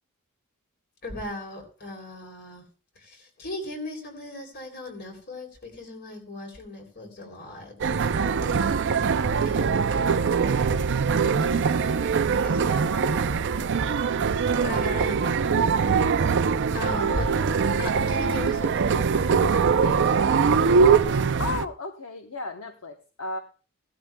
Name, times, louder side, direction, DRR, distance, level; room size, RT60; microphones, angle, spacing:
voice 1, 1.0-2.6 2.9-8.7 9.4-10.6 11.4-12.0 12.4-15.2 16.7-20.2, left 1 dB, 50° left, 3 dB, 3.0 m, -38 dB
sound 1, 7.8-21.6, right 5 dB, 55° right, 0.5 m, -22 dB
voice 2, 14.5-14.9 15.2-15.9 16.9-17.0 21.4-23.4, left 3 dB, 65° left, 5 dB, 0.9 m, -35 dB
17.0 x 12.0 x 2.2 m, 0.36 s
head